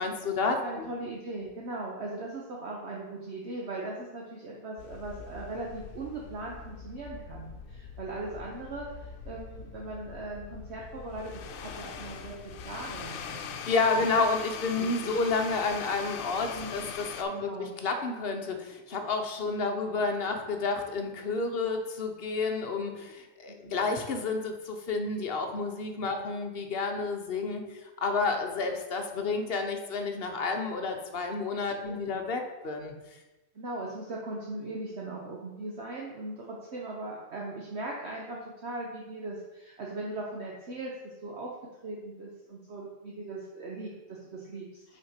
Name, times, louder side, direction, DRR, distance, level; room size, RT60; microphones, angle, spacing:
voice 1, 0.0-0.9 13.7-27.7 28.0-32.9, left 3 dB, 50° left, 4 dB, 1.0 m, -30 dB
voice 2, 0.6-13.6 13.9-14.1 14.8-15.1 16.5-16.9 17.3-17.8 23.5-23.8 26.1-26.3 31.7-32.2 33.5-41.5 41.8-44.8, right 2 dB, 55° right, -2 dB, 1.1 m, -39 dB
sound 1, 4.8-17.2, left 7 dB, 75° left, 1.0 m, -42 dB
5.8 x 4.4 x 5.7 m, 1.1 s
omnidirectional pair, 1.4 m